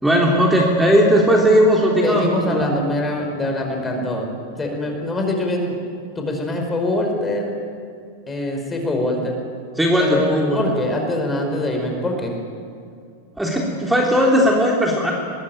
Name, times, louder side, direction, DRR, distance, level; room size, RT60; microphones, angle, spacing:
voice 1, 0.0-2.6 9.7-10.6 13.4-15.1, equal, 5° right, -2 dB, 3.2 m, -17 dB
voice 2, 2.0-4.3 4.6-5.7 6.1-7.5 8.3-9.4 10.0-12.3, left 1 dB, 15° left, 3 dB, 5.2 m, -23 dB
24.0 x 20.5 x 9.1 m, 2.4 s
figure-of-eight pair, 90°, 0 cm